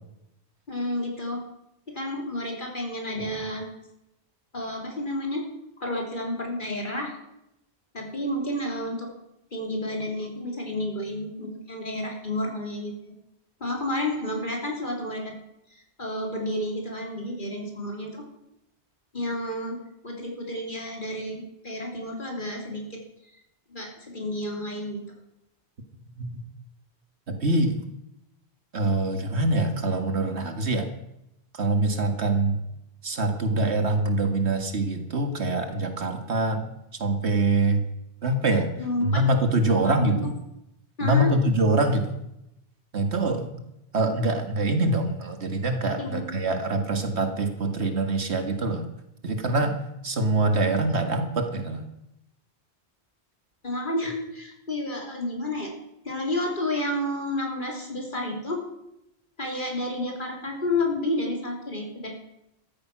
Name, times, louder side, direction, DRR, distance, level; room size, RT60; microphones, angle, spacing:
voice 1, 0.7-1.4 1.9-3.7 4.5-5.4 5.8-7.1 7.9-9.1 9.5-13.1 13.6-15.3 16.0-18.3 19.1-19.8 20.0-23.0 23.7-25.0 38.8-39.2 39.8-40.3 41.0-41.3 46.0-46.2 53.6-55.7 56.1-58.6 59.4-62.1, left 1 dB, 50° left, 1 dB, 3.6 m, -30 dB
voice 2, 27.3-27.8 28.7-30.9 31.5-32.6 33.0-36.7 37.0-37.8 38.2-38.7 39.0-40.3 41.0-42.1 42.9-43.5 43.9-48.9 49.2-49.8 50.0-51.8, right 2 dB, 80° right, 6 dB, 2.0 m, -24 dB
13.5 x 13.5 x 6.1 m, 0.84 s
omnidirectional pair, 1.1 m